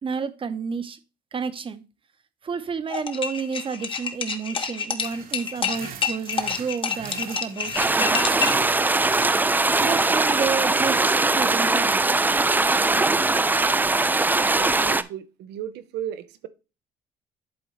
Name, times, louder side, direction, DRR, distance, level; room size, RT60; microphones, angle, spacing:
voice 1, 0.0-1.0 1.3-1.8 2.4-8.5 9.8-11.0 11.3-12.0, right 6 dB, 30° right, 0.9 m, -30 dB
sound 1, 2.9-8.7, left 6 dB, 30° left, 1.0 m, -28 dB
sound 2, 5.0-11.2, right 7 dB, 55° right, 1.3 m, -41 dB
sound 3, 7.8-15.0, right 3 dB, 10° right, 0.4 m, -21 dB
voice 2, 14.5-16.5, right 10 dB, 80° right, 0.9 m, -35 dB
11.0 x 4.0 x 3.2 m
cardioid pair, 110°, 17 cm